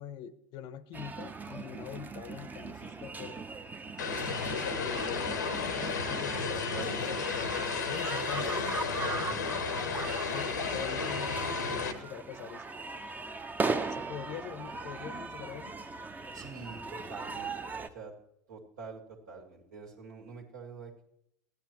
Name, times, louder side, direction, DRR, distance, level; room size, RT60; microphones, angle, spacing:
voice 1, 0.0-3.4 4.5-5.5 6.1-8.8 10.3-12.6 13.9-15.7, left 9 dB, 55° left, 15 dB, 0.7 m, -43 dB
sound 1, 0.9-17.9, right 4 dB, 20° right, 0.6 m, -39 dB
Vehicle, 4.0-11.9, left 5 dB, 90° left, 0.9 m, -33 dB
voice 2, 6.7-7.0 8.9-9.5 10.2-10.5 16.3-18.1 18.5-21.0, right 4 dB, 80° right, 0 dB, 2.0 m, -46 dB
13.5 x 9.6 x 3.0 m, 0.76 s
hypercardioid pair, 80°, 9 cm